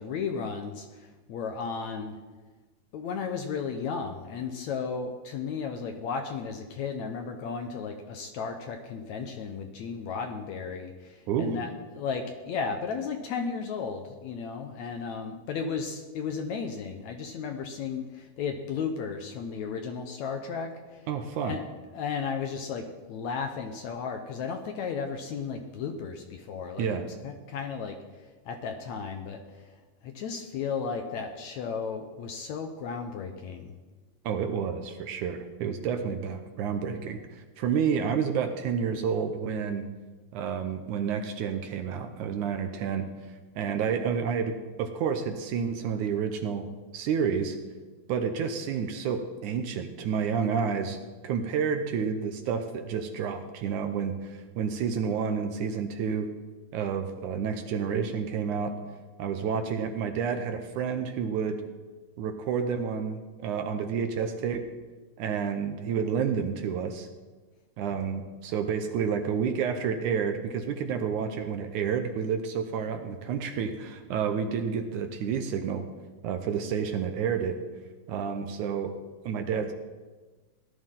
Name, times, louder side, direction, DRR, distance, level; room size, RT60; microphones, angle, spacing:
voice 1, 0.0-2.2 2.9-21.2 21.4-21.6 21.9-28.0 28.5-29.4 30.0-33.7, left 5 dB, 70° left, 5 dB, 1.9 m, -34 dB
voice 2, 11.3-11.6 21.1-21.6 26.8-27.1 34.2-39.9 40.3-43.1 43.6-46.7 46.9-47.6 48.1-51.0 51.2-56.3 56.7-58.8 59.2-61.6 62.2-64.7 65.2-67.1 67.8-75.9 76.2-77.6 78.1-79.0 79.2-79.7, right 6 dB, 70° right, 6 dB, 2.1 m, -30 dB
18.0 x 12.5 x 3.8 m, 1.3 s
omnidirectional pair, 4.0 m